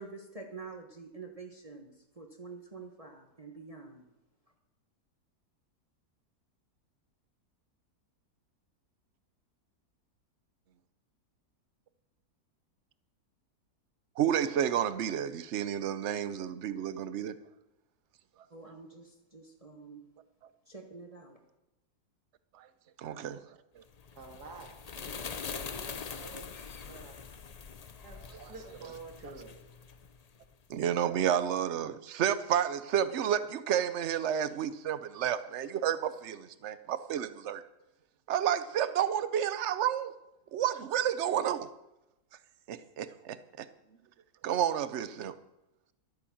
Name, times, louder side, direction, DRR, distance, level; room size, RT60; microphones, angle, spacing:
voice 1, 0.0-4.1 18.5-20.1 20.7-21.4, right 4 dB, 25° right, 2 dB, 1.3 m, -47 dB
voice 2, 14.2-17.4 22.6-22.7 23.0-23.4 23.8-23.9 28.3-28.5 30.7-37.6 38.3-40.1 40.5-41.7 42.7-43.7 44.4-45.3, right 9 dB, 55° right, 13 dB, 0.9 m, -31 dB
sound 1, 23.9-30.5, left 6 dB, 75° left, 0.3 m, -43 dB
voice 3, 24.2-27.2 27.6-27.7 28.0-28.2 28.5-29.6, right 3 dB, 75° right, 2 dB, 2.5 m, -49 dB
13.0 x 9.3 x 7.2 m, 0.94 s
omnidirectional pair, 1.7 m